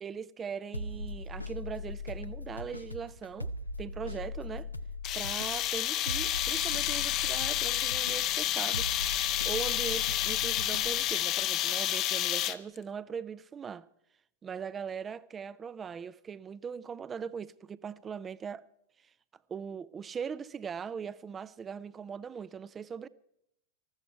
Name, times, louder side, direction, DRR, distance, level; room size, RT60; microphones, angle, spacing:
voice 1, 0.0-3.5 3.8-4.7 5.1-9.0 9.4-13.9 14.4-18.6 19.5-23.1, right 6 dB, 20° right, 0.5 m, -40 dB
sound 1, 0.7-11.4, left 2 dB, 85° left, 0.8 m, -40 dB
sound 2, 5.0-12.8, left 13 dB, 35° left, 0.7 m, -30 dB
19.0 x 14.5 x 4.6 m
figure-of-eight pair, 90°, 0 cm